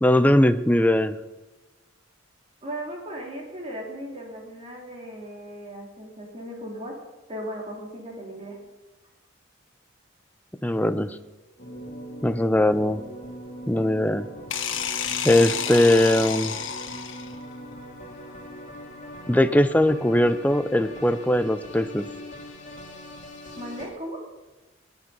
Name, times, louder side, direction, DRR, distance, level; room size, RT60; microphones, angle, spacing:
voice 1, 0.0-1.2 10.6-11.2 12.2-13.0 13.7-14.3 15.2-16.5 19.3-22.0, left 1 dB, 10° left, 10 dB, 0.6 m, -20 dB
voice 2, 2.6-6.9 7.3-8.7 23.6-24.2, equal, 30° right, -2 dB, 4.1 m, -37 dB
sound 1, 11.6-23.9, equal, 40° left, 2.8 m, -41 dB
sound 2, 14.5-17.4, left 8 dB, 70° left, 1.4 m, -30 dB
18.5 x 10.5 x 5.5 m, 1.2 s
head